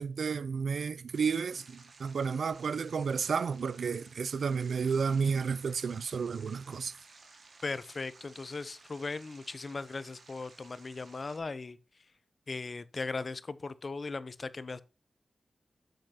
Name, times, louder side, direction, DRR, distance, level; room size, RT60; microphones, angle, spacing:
voice 1, 0.0-6.9, right 5 dB, 80° right, 0.4 m, -32 dB
sound 1, 1.1-11.4, right 3 dB, 60° right, 1.7 m, -57 dB
voice 2, 7.6-11.8 12.5-14.8, left 3 dB, 40° left, 0.5 m, -38 dB
7.6 x 6.8 x 2.8 m
wide cardioid pair, 155°, 0 cm